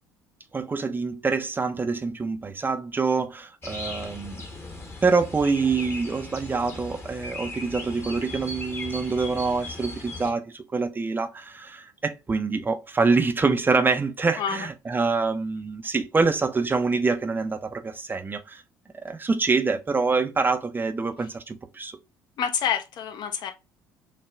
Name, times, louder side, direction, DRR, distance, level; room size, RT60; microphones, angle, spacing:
voice 1, 0.5-4.4 5.0-18.6 18.9-22.0, right 4 dB, 20° right, 0.5 m, -25 dB
sound 1, 3.6-10.3, left 2 dB, 25° left, 1.1 m, -38 dB
voice 2, 22.4-23.5, left 8 dB, 50° left, 0.8 m, -27 dB
6.3 x 2.1 x 2.3 m
figure-of-eight pair, 55°, 9 cm